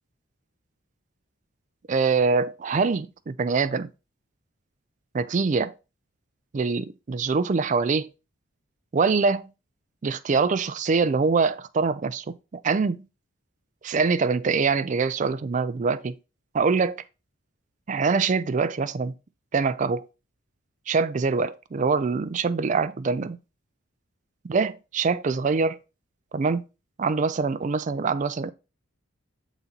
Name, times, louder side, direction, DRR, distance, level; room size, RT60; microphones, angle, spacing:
voice 1, 1.9-3.9 5.1-5.7 6.5-8.1 8.9-9.5 10.0-13.0 13.8-16.2 16.5-17.0 17.9-19.1 19.5-20.1 20.9-23.4 24.4-25.8 26.3-26.6 27.0-28.5, right 4 dB, 35° right, 0.4 m, -24 dB
7.2 x 4.0 x 3.9 m
head